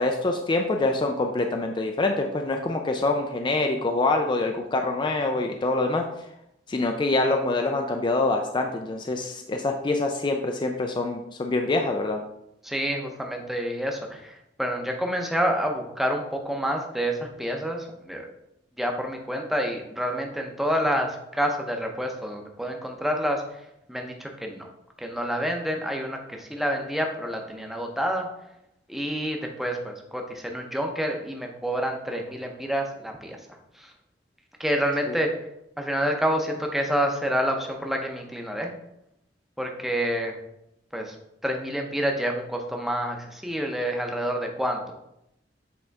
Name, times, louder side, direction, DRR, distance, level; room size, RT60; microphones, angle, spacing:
voice 1, 0.0-6.0 6.7-12.2 35.1-35.2, left 2 dB, 25° left, 4 dB, 0.4 m, -25 dB
voice 2, 12.6-18.3 18.8-23.4 23.9-24.7 25.0-28.3 28.9-33.4 33.7-33.9 34.6-35.3 35.8-38.7 39.6-40.4 40.9-41.1 41.4-44.9, equal, ahead, 2 dB, 0.7 m, -28 dB
7.8 x 3.6 x 3.4 m, 0.82 s
head